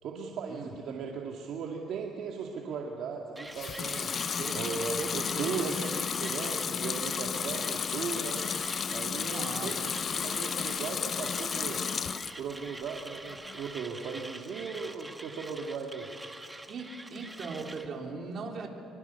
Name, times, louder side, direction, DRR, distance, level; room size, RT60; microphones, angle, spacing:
voice 1, 0.0-4.1 4.5-8.5 8.9-11.8 12.4-16.1, right 5 dB, 70° right, 0 dB, 2.2 m, -37 dB
Mechanisms, 3.4-17.9, right 2 dB, 10° right, 1.5 m, -45 dB
Water tap faucet / Sink (filling or washing) / Liquid, 3.5-12.4 12.8-13.5, left 7 dB, 45° left, 0.7 m, -33 dB
voice 2, 5.0-5.8 9.3-9.8 16.7-18.7, right 4 dB, 50° right, 1 dB, 3.7 m, -39 dB
25.0 x 24.0 x 7.0 m, 2.6 s
cardioid pair, 110°, 0 cm